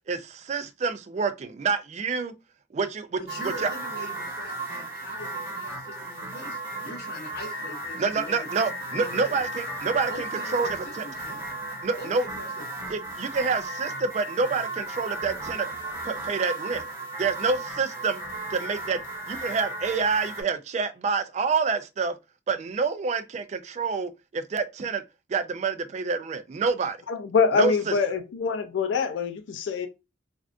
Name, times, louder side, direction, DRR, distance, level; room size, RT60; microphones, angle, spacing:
voice 1, 0.1-2.3 2.7-3.2 3.6-3.7 8.0-10.3 10.5-11.1 11.8-12.2 12.9-15.7 16.0-16.9 17.2-18.2 18.5-19.0 19.3-22.1 22.5-25.0 25.3-27.0 27.6-27.7, right 4 dB, 40° right, 0.3 m, -27 dB
voice 2, 3.2-8.5 8.9-9.4 10.1-11.4 12.0-12.9, left 1 dB, 60° left, 1.5 m, -42 dB
sound 1, 3.3-20.4, right 2 dB, 15° right, 1.0 m, -35 dB
voice 3, 27.1-29.9, left 5 dB, 80° left, 0.4 m, -25 dB
3.4 x 2.4 x 2.4 m
head